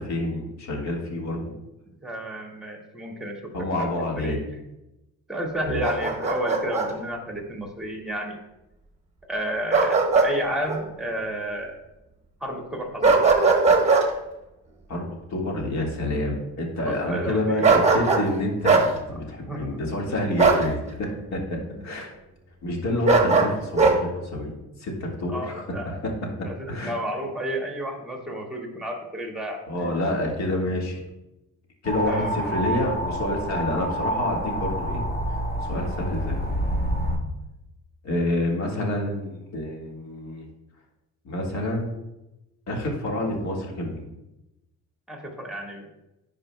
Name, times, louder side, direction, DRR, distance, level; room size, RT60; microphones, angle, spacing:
voice 1, 0.0-1.5 3.5-4.4 5.6-5.8 14.9-22.1 22.6-26.1 26.4-27.0 29.7-31.0 31.8-35.0 35.6-36.4 38.0-40.4 41.3-41.9 42.7-44.1, left 1 dB, 65° left, 0 dB, 1.7 m, -28 dB
voice 2, 2.0-4.5 5.3-8.4 9.3-11.7 12.4-13.1 16.8-17.8 19.1-19.8 21.1-21.4 25.3-26.0 26.4-29.9 32.1-32.6 45.1-45.9, right 1 dB, ahead, 0 dB, 1.7 m, -32 dB
Bark, 5.8-6.9 9.7-10.3 10.7-10.8 13.0-14.1 17.6-18.3 18.6-18.9 20.4-20.7 23.1-24.0, right 4 dB, 20° right, 1.1 m, -19 dB
sound 1, 31.8-37.2, equal, 30° left, 1.1 m, -28 dB
10.5 x 5.0 x 2.2 m, 0.93 s
cardioid pair, 90°, 30 cm